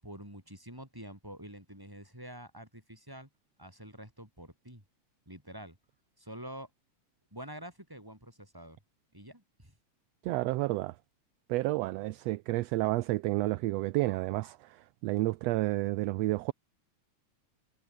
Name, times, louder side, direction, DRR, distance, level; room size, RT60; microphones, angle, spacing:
voice 1, 0.0-3.3 3.6-4.8 5.3-5.8 6.2-6.7 7.3-8.8 9.1-9.7, right 1 dB, 5° right, 7.7 m, -47 dB
voice 2, 10.2-10.9 11.5-14.8 15.0-16.5, right 19 dB, 80° right, 1.6 m, -30 dB
omnidirectional pair, 3.3 m